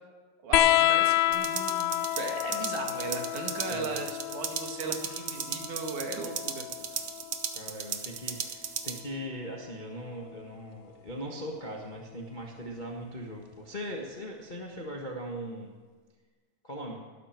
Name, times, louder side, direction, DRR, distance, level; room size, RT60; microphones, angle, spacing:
voice 1, 0.4-6.7, right 4 dB, 90° right, 3 dB, 3.2 m, -37 dB
sound 1, 0.5-7.6 9.0-9.8 11.1-11.2, left 14 dB, 80° left, 1.9 m, -29 dB
sound 2, 1.3-9.0, right 8 dB, 65° right, 1.6 m, -37 dB
voice 2, 7.5-15.7 16.6-17.0, equal, 45° left, 0 dB, 0.6 m, -39 dB
19.5 x 11.5 x 4.5 m, 1.4 s
omnidirectional pair, 3.4 m